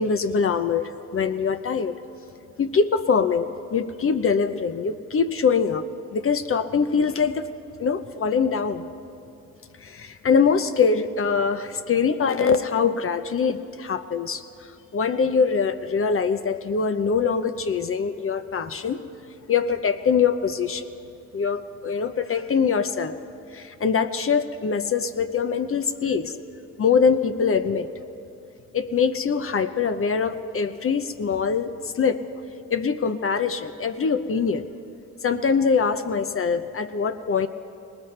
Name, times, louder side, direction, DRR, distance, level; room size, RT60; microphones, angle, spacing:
voice 1, 0.0-2.0 2.6-5.9 6.1-7.5 7.8-8.9 9.8-19.0 19.5-20.8 21.3-23.2 23.5-26.3 26.8-27.9 28.7-32.4 32.7-34.7 35.2-37.5, left 5 dB, 45° left, 9 dB, 0.7 m, -23 dB
19.5 x 19.0 x 3.3 m, 2.7 s
cardioid pair, 70°, 31 cm